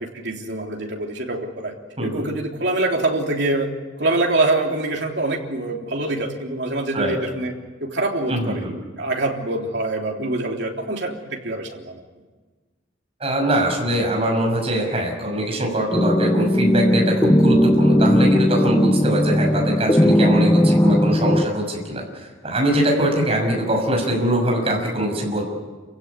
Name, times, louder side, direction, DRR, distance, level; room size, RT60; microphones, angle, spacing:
voice 1, 0.0-1.7 2.0-3.7 4.0-7.5 7.8-8.7 9.0-12.0, right 2 dB, 65° right, 1 dB, 3.5 m, -24 dB
voice 2, 8.3-8.7 13.2-25.4, right 1 dB, 30° right, 1 dB, 6.4 m, -22 dB
sound 1, 15.9-21.5, left 1 dB, 15° left, 0.7 m, -17 dB
28.5 x 16.5 x 9.7 m, 1.3 s
head